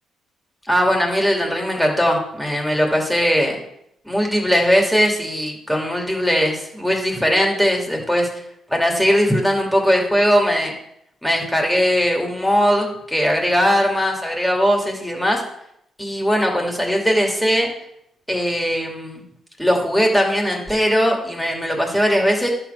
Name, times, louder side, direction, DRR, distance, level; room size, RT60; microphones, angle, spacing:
voice 1, 0.7-3.6 4.0-8.3 8.7-10.7 11.2-15.4 16.0-17.7 18.3-19.2 19.6-22.5, equal, ahead, 0 dB, 2.6 m, -19 dB
11.0 x 4.4 x 6.9 m, 0.76 s
cardioid pair, 90°, 0 cm